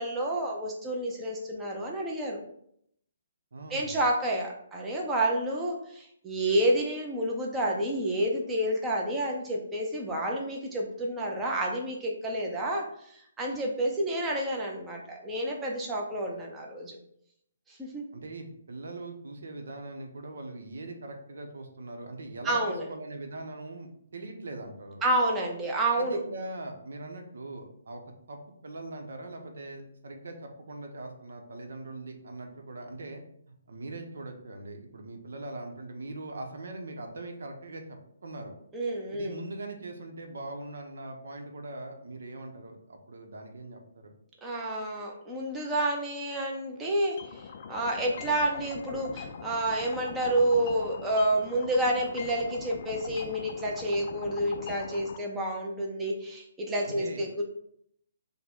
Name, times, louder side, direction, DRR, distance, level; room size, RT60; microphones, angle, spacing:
voice 1, 0.0-2.4 3.7-17.0 17.7-18.0 22.4-22.8 25.0-26.2 38.7-39.3 44.4-57.4, right 1 dB, 10° right, -2 dB, 0.6 m, -29 dB
voice 2, 3.5-4.0 18.1-25.0 26.0-38.5 39.1-44.1 56.8-57.2, right 2 dB, 75° right, 4 dB, 0.8 m, -41 dB
sound 1, 47.2-55.2, left 6 dB, 40° left, 0.4 m, -42 dB
5.6 x 2.2 x 3.6 m, 0.70 s
hypercardioid pair, 160°, 0 cm